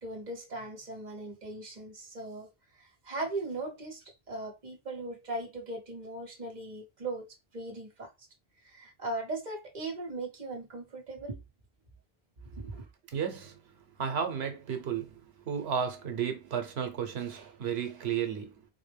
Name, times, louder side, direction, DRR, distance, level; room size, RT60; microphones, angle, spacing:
voice 1, 0.0-2.5 2.8-8.1 8.6-11.4 12.5-12.8, right 2 dB, 45° right, 1.2 m, -39 dB
voice 2, 13.1-13.6 14.0-15.2 15.5-18.6, right 7 dB, 85° right, 1.1 m, -33 dB
4.0 x 2.2 x 3.4 m
omnidirectional pair, 1.0 m